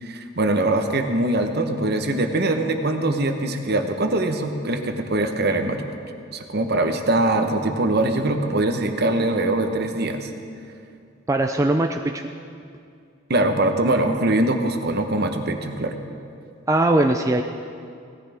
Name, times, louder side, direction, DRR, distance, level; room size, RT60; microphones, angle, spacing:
voice 1, 0.0-5.9 6.3-10.3 13.3-16.0, right 2 dB, 50° right, 6 dB, 1.0 m, -22 dB
voice 2, 11.3-12.2 16.7-17.4, right 2 dB, 15° right, 4 dB, 0.4 m, -20 dB
18.0 x 13.5 x 3.5 m, 2.4 s
head